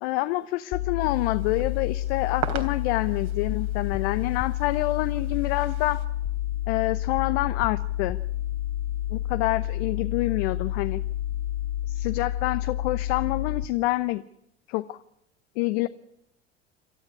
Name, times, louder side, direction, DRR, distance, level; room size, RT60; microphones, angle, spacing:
voice 1, 0.0-6.0 6.7-8.2 9.1-11.0 11.9-14.2 14.7-15.0 15.6-15.9, left 18 dB, 65° left, 12 dB, 1.0 m, -27 dB
sound 1, 0.7-13.7, left 13 dB, 45° left, 1.6 m, -29 dB
sound 2, 1.0-6.1, right 8 dB, 50° right, 3.5 m, -40 dB
28.0 x 13.0 x 9.8 m, 0.79 s
hypercardioid pair, 75°, 34 cm